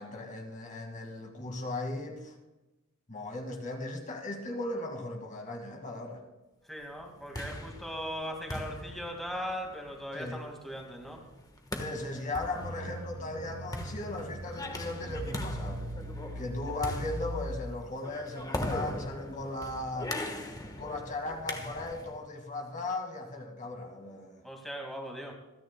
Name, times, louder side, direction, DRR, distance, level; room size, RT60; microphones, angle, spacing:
voice 1, 0.0-2.4 3.1-6.2 10.1-10.4 11.8-15.8 16.4-20.2 20.8-24.4, left 2 dB, 35° left, 2 dB, 2.0 m, -37 dB
voice 2, 6.7-11.2 24.4-25.4, equal, ahead, 0 dB, 2.0 m, -39 dB
sound 1, 7.0-22.2, left 1 dB, 15° left, 1.3 m, -40 dB
sound 2, 12.5-18.0, equal, 60° right, 1.1 m, -40 dB
27.0 x 10.0 x 2.3 m, 1.0 s
head